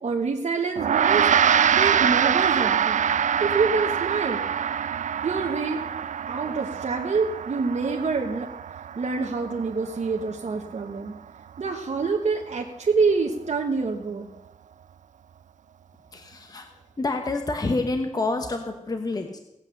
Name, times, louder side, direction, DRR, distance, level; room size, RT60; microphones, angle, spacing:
voice 1, 0.0-1.3 1.7-3.0 3.4-4.4 5.2-5.8 6.3-8.5 9.0-11.1 11.6-14.3, right 4 dB, 60° right, 1 dB, 1.2 m, -26 dB
Gong, 0.8-10.4, right 8 dB, 80° right, 0.4 m, -24 dB
voice 2, 16.1-16.7 17.0-19.4, left 2 dB, 30° left, 5 dB, 1.2 m, -28 dB
17.5 x 8.2 x 6.8 m, 0.86 s
wide cardioid pair, 150°, 13 cm